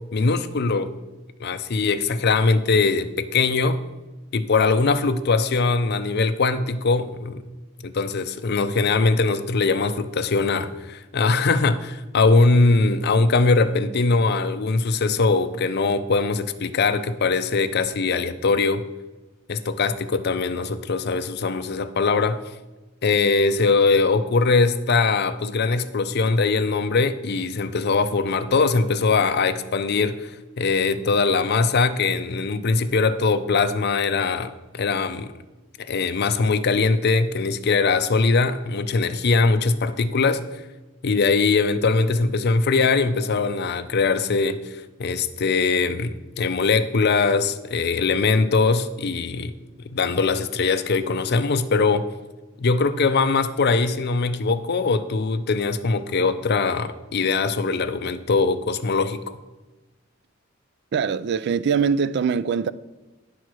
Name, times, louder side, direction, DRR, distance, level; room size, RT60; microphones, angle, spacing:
voice 1, 0.1-0.9 1.4-3.8 4.3-7.4 7.8-18.8 19.5-22.4 23.0-30.3 30.6-35.3 35.8-40.4 41.0-44.6 45.0-49.5 49.8-52.1 52.6-59.4, left 4 dB, 55° left, 0.5 m, -21 dB
voice 2, 60.9-62.7, right 6 dB, 60° right, 0.3 m, -22 dB
10.0 x 4.7 x 6.1 m
head